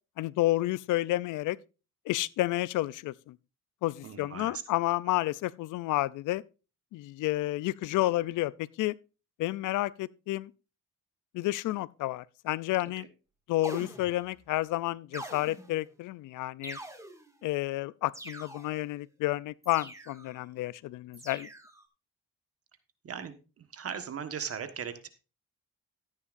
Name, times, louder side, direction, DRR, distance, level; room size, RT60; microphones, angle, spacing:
voice 1, 0.2-1.6 2.1-3.4 3.8-6.4 6.9-8.9 9.4-10.5 11.3-13.1 13.5-16.8 17.4-21.5, left 17 dB, 85° left, 0.5 m, -30 dB
voice 2, 4.0-4.6 13.0-13.1 23.0-25.1, right 7 dB, 50° right, 1.4 m, -38 dB
sound 1, 13.6-14.4 15.1-15.9 16.6-17.4 18.1-18.9 19.6-20.4 21.1-21.8, right 1 dB, 10° right, 2.0 m, -44 dB
13.5 x 9.9 x 2.5 m
cardioid pair, 90°, 30 cm